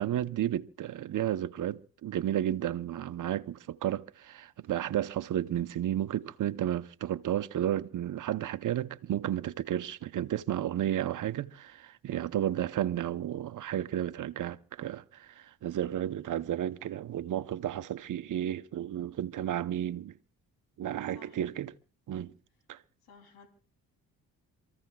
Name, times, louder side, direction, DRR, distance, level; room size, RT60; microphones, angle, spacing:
voice 1, 0.0-20.1 20.8-21.7 22.1-22.3 22.7-22.8, right 11 dB, 55° right, 0.8 m, -32 dB
voice 2, 21.1-21.4 23.0-23.5, left 5 dB, 85° left, 3.3 m, -55 dB
27.5 x 15.0 x 2.3 m
supercardioid pair, 70°, 36 cm